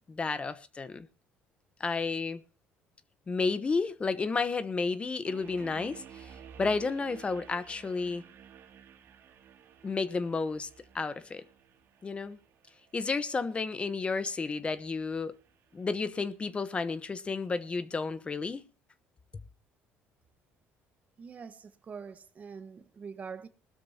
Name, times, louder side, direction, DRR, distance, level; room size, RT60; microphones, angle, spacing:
voice 1, 0.1-1.1 1.8-2.4 3.3-8.2 9.8-10.7 10.9-11.4 12.0-12.4 12.9-15.3 15.7-18.6, left 4 dB, 25° left, 1.0 m, -32 dB
sound 1, 5.2-16.3, right 8 dB, 60° right, 2.5 m, -54 dB
voice 2, 21.2-23.5, right 6 dB, 35° right, 1.4 m, -44 dB
20.0 x 13.0 x 2.9 m
cardioid pair, 105°, 4 cm